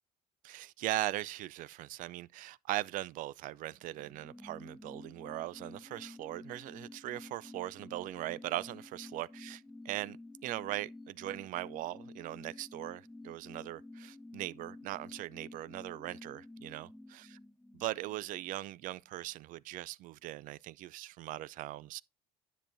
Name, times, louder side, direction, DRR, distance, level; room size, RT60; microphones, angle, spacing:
voice 1, 0.4-10.2 10.4-17.4 17.7-22.0, right 16 dB, 60° right, 0.4 m, -40 dB
sound 1, 3.7-18.9 19.2-19.3, left 2 dB, ahead, 0.9 m, -51 dB
10.0 x 7.3 x 2.6 m
supercardioid pair, 75°, 15 cm